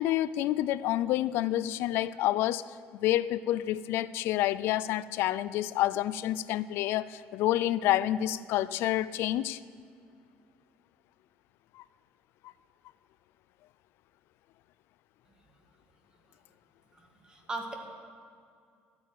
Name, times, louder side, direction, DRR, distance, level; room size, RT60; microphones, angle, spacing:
voice 1, 0.0-9.6 11.7-11.8, left 14 dB, 75° left, 17 dB, 0.4 m, -28 dB
voice 2, 16.9-17.7, right 2 dB, 20° right, 3 dB, 1.7 m, -39 dB
12.0 x 9.4 x 9.1 m, 2.3 s
cardioid pair, 155°, 4 cm